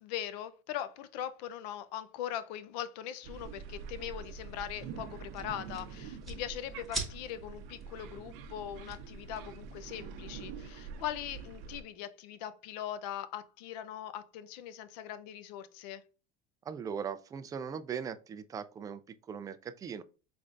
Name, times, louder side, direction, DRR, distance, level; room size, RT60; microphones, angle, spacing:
voice 1, 0.0-16.0, left 11 dB, 80° left, 0.6 m, -41 dB
sound 1, 3.2-11.8, right 6 dB, 65° right, 0.7 m, -46 dB
sound 2, 3.3-10.0, right 2 dB, ahead, 1.3 m, -46 dB
voice 2, 16.7-19.0 19.3-20.0, right 7 dB, 15° right, 0.3 m, -39 dB
5.1 x 3.3 x 2.5 m
supercardioid pair, 135°, 21 cm